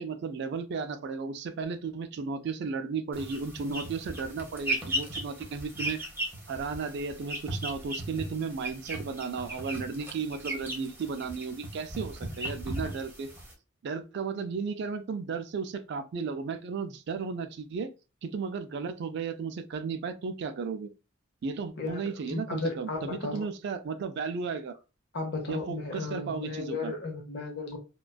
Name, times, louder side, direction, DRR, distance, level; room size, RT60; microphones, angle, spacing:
voice 1, 0.0-6.0 6.5-13.3 13.8-17.9 18.2-20.9 21.4-24.7 25.5-26.9, right 5 dB, 55° right, 0.3 m, -34 dB
sound 1, 3.1-13.5, right 1 dB, 10° right, 0.8 m, -37 dB
voice 2, 22.3-23.4 25.1-27.8, left 3 dB, 55° left, 0.8 m, -34 dB
2.4 x 2.2 x 2.2 m
head